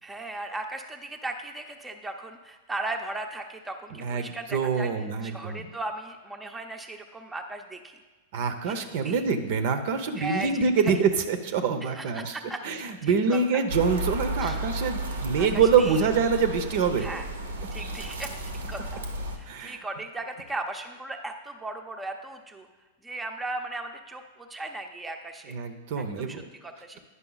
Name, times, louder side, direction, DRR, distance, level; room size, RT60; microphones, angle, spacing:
voice 1, 0.0-8.0 8.6-9.2 10.2-10.5 10.8-10.9 11.8-13.4 14.4-14.6 15.4-16.1 17.0-17.2 17.7-18.3 18.7-19.0 19.3-22.7 23.0-25.6 26.2-27.0, right 2 dB, 10° right, 3 dB, 0.6 m, -37 dB
voice 2, 3.9-5.7 8.3-12.3 12.6-17.1 19.5-19.8 25.5-26.4, right 5 dB, 60° right, 9 dB, 0.7 m, -25 dB
sound 1, 13.7-19.4, right 1 dB, 85° right, 0.9 m, -33 dB
9.6 x 5.4 x 4.0 m, 1.3 s
hypercardioid pair, 110°, 0 cm